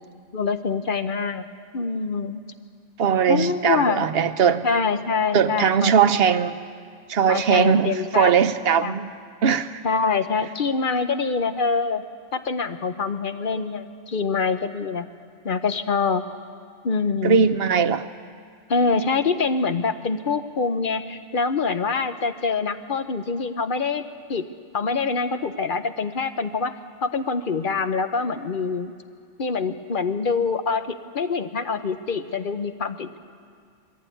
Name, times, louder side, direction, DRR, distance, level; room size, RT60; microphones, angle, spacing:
voice 1, 0.3-1.4 1.7-2.4 3.3-4.1 4.6-5.9 7.3-8.3 8.8-9.0 9.8-12.0 12.3-15.1 15.4-16.2 16.8-17.4 18.7-24.0 24.3-24.5 24.7-26.7 27.0-28.9 29.4-33.1, left 4 dB, 50° left, 9 dB, 1.0 m, -25 dB
voice 2, 3.0-4.7 5.3-6.6 7.1-9.1 9.4-9.8 17.2-18.0, right 7 dB, 60° right, 11 dB, 1.0 m, -20 dB
22.5 x 15.5 x 9.2 m, 2.2 s
omnidirectional pair, 1.2 m